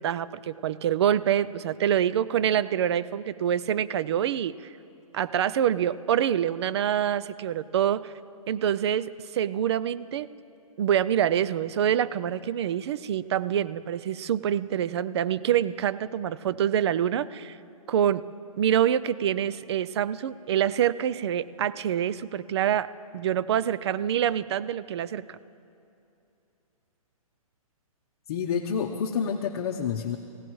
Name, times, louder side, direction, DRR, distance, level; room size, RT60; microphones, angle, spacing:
voice 1, 0.0-4.5 5.1-8.1 8.5-10.3 10.8-17.6 17.9-18.2 18.6-22.9 23.1-25.4, right 10 dB, 45° right, 16 dB, 0.5 m, -26 dB
voice 2, 28.3-30.2, left 7 dB, 45° left, 3 dB, 0.9 m, -28 dB
28.5 x 16.0 x 3.1 m, 2.7 s
hypercardioid pair, 150°, 19 cm